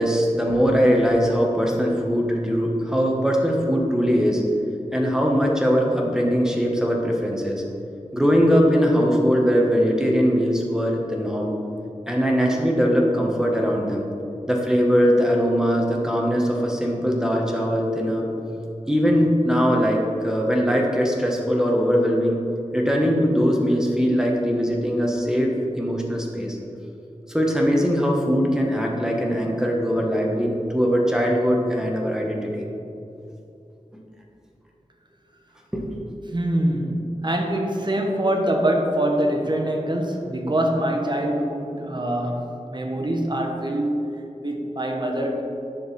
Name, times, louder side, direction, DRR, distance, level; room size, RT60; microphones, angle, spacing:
voice 1, 0.0-4.4 4.9-7.6 8.1-11.5 12.1-14.1 14.5-18.3 18.9-22.4 22.7-26.6 27.3-32.7 35.7-35.8, equal, 5° right, -1 dB, 1.5 m, -21 dB
voice 2, 36.3-44.0 44.4-45.4, right 1 dB, 35° right, 1 dB, 1.3 m, -24 dB
10.0 x 6.6 x 4.3 m, 2.7 s
wide cardioid pair, 60°, 13 cm